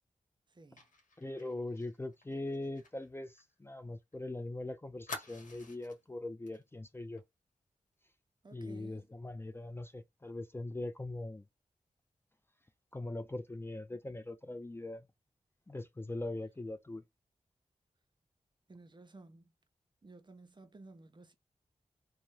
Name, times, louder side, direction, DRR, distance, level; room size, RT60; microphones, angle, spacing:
voice 1, 0.5-0.9 8.4-9.1 18.7-19.5 20.0-21.3, right 2 dB, 35° right, 0.6 m, -55 dB
Fire, 0.8-4.2 4.5-4.6 5.1-6.0 6.5-6.6 6.9-7.2, left 2 dB, 80° left, 1.0 m, -49 dB
voice 2, 1.2-7.2 8.5-11.4 12.9-15.1 15.7-17.0, left 2 dB, 20° left, 0.4 m, -41 dB
2.5 x 2.1 x 3.1 m
cardioid pair, 45°, 13 cm